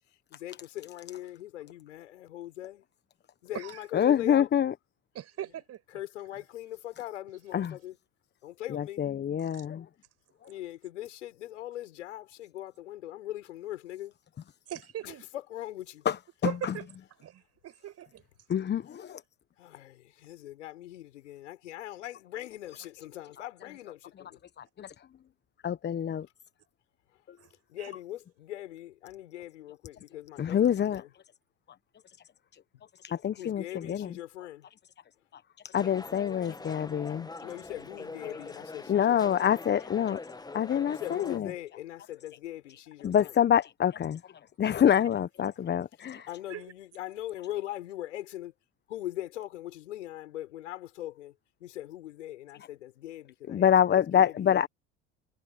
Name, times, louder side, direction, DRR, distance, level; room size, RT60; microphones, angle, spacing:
voice 1, 0.3-2.8 3.4-4.5 5.9-8.0 8.4-9.0 10.5-14.1 15.0-16.0 19.6-24.4 27.7-31.1 33.4-34.7 37.4-39.5 40.9-43.3 46.3-48.5 48.9-51.3 51.6-54.5, left 14 dB, 75° left, 6.7 m, -41 dB
voice 2, 3.9-4.7 7.5-7.8 8.7-9.9 10.4-10.5 16.0-16.8 18.5-19.2 24.6-24.9 25.6-26.2 27.3-27.4 30.4-31.0 32.5-32.6 33.0-34.1 35.3-37.3 38.9-40.2 40.5-41.5 43.0-44.3 44.6-46.3 53.5-54.7, left 9 dB, 30° left, 1.2 m, -26 dB
voice 3, 5.1-5.8 14.7-15.2 16.4-16.8 17.2-18.2 27.8-27.9 46.5-46.6, right 11 dB, 40° right, 6.3 m, -39 dB
sound 1, 35.7-41.4, left 3 dB, 10° left, 1.8 m, -44 dB
hypercardioid pair, 80°, 36 cm